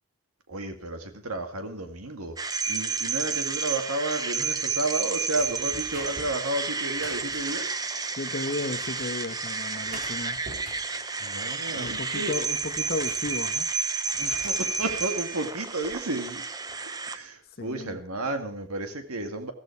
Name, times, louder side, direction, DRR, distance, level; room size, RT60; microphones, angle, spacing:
voice 1, 0.5-2.4 2.7-7.8 11.2-12.3 14.1-16.4 16.7-19.5, right 2 dB, 80° right, 6 dB, 2.2 m, -32 dB
sound 1, 2.4-17.2, right 4 dB, 15° right, 0.8 m, -31 dB
sound 2, 5.3-7.8 8.5-9.4 9.8-11.1 11.5-13.8 14.1-15.1 15.6-16.0, right 1 dB, 40° right, 4.0 m, -46 dB
voice 2, 8.2-10.4 11.7-13.7 17.6-18.0, left 2 dB, 45° left, 8 dB, 1.4 m, -34 dB
14.5 x 14.5 x 4.7 m, 0.43 s
head